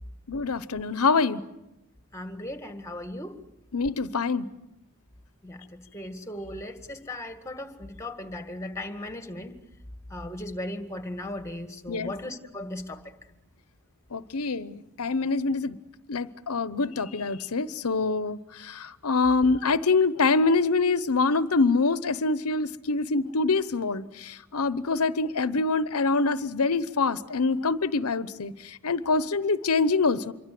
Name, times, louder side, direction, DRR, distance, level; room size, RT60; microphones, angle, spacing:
voice 1, 0.3-1.4 3.7-4.5 11.9-12.1 14.1-15.8 16.1-30.3, left 4 dB, 90° left, 0.9 m, -25 dB
voice 2, 2.1-3.3 5.4-9.5 10.1-13.0, left 1 dB, 15° left, 1.9 m, -37 dB
27.0 x 23.5 x 7.7 m
head